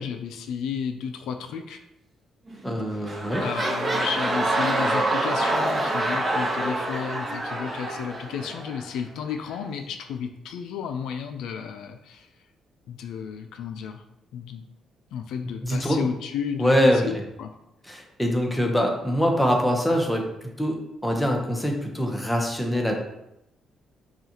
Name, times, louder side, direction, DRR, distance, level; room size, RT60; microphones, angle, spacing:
voice 1, 0.0-1.8 2.9-12.3 12.9-14.0 14.3-14.6 15.1-17.5, left 7 dB, 85° left, 6 dB, 0.3 m, -33 dB
sound 1, 2.5-2.7 3.0-8.8 9.5-9.6, right 1 dB, 35° right, 0.8 m, -26 dB
voice 2, 2.6-3.4 15.6-16.1 16.6-17.0 17.9-20.3 20.6-23.0, equal, 5° left, 1 dB, 0.8 m, -23 dB
Mallet percussion, 4.5-7.4, right 6 dB, 55° right, 0.4 m, -38 dB
5.5 x 2.3 x 2.8 m, 0.84 s
cardioid pair, 90°, 0 cm